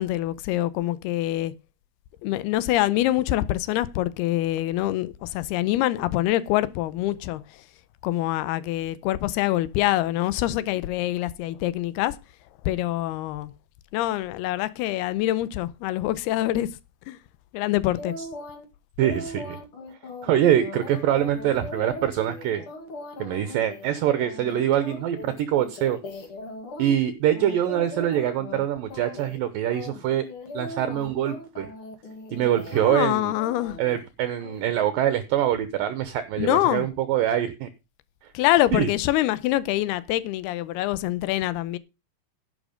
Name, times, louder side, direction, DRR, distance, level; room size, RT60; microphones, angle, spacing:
voice 1, 0.0-1.5 2.2-7.4 8.0-12.2 12.7-13.5 13.9-16.7 17.1-17.2 17.5-18.1 32.7-33.8 36.4-36.9 38.3-41.8, left 15 dB, 90° left, 2.8 m, -25 dB
sound 1, 17.9-18.6 19.0-27.0 27.3-28.6 28.9-29.4 29.7-33.0 33.3-34.0 34.4-34.6, left 2 dB, 40° left, 2.5 m, -39 dB
voice 2, 19.0-19.6 20.2-22.6 23.2-26.0 26.8-30.2 30.5-31.7 32.3-33.3 33.8-37.7 38.2-38.3 38.7-38.9, right 11 dB, 75° right, 2.3 m, -24 dB
11.0 x 8.4 x 5.1 m
omnidirectional pair, 4.5 m